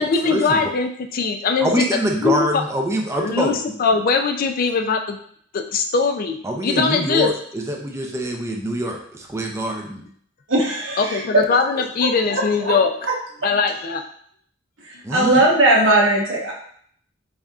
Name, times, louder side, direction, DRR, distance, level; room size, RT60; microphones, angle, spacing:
voice 1, 0.0-1.8 2.1-2.6 3.2-5.2 5.5-7.3 11.0-12.9 13.4-14.1, left 4 dB, 50° left, 5 dB, 0.4 m, -21 dB
voice 2, 1.6-3.6 6.4-10.0 15.0-15.4, equal, 15° right, 0 dB, 0.4 m, -24 dB
voice 3, 10.5-11.2 12.3-12.7 14.8-16.5, right 1 dB, 80° right, -3 dB, 1.1 m, -18 dB
4.1 x 3.4 x 2.4 m, 0.62 s
head